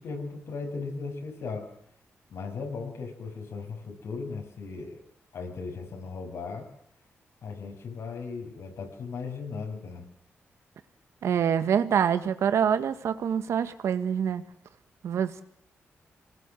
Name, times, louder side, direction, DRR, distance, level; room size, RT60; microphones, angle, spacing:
voice 1, 0.0-1.7 2.3-5.0 5.3-6.7 7.4-10.0, left 4 dB, 80° left, 3 dB, 7.9 m, -37 dB
voice 2, 11.2-14.4 15.0-15.4, right 8 dB, 90° right, 11 dB, 1.8 m, -25 dB
26.5 x 20.0 x 7.6 m, 0.66 s
wide cardioid pair, 150°, 5 cm